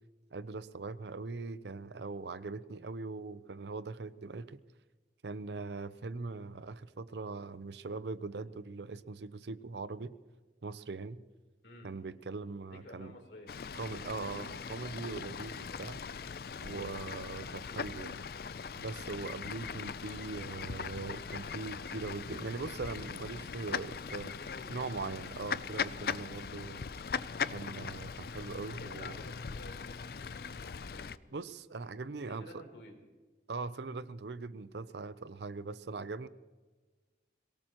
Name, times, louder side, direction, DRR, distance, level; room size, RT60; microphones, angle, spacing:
voice 1, 0.3-4.6 5.2-10.2 10.6-11.2 11.8-13.1 13.7-16.0 16.6-18.2 18.7-24.4 24.7-26.9 27.5-29.2 31.3-32.5 33.5-36.3, right 3 dB, 75° right, 16 dB, 0.6 m, -41 dB
voice 2, 12.7-13.5 24.4-25.0 28.8-30.3 30.9-31.1 32.3-32.9, left 1 dB, 85° left, 1 dB, 3.5 m, -51 dB
Fowl / Bird, 13.5-31.2, left 6 dB, 60° left, 0.4 m, -40 dB
22.5 x 18.0 x 3.0 m, 1.3 s
head